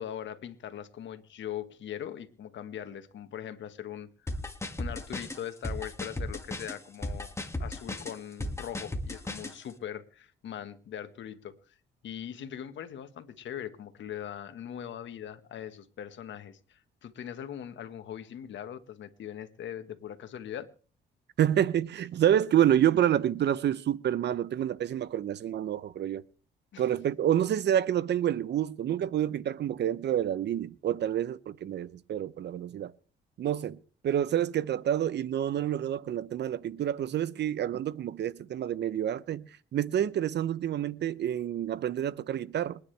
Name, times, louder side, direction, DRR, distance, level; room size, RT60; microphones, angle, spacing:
voice 1, 0.0-4.3 4.8-7.3 7.6-11.8 12.0-20.7 26.7-26.8, left 10 dB, 70° left, 1.6 m, -41 dB
sound 1, 4.3-9.5, left 1 dB, 15° left, 2.1 m, -35 dB
voice 2, 21.4-26.2 26.8-32.9 33.4-33.8 34.0-42.8, right 10 dB, 60° right, 0.7 m, -28 dB
27.0 x 9.9 x 3.4 m
cardioid pair, 90°, 20 cm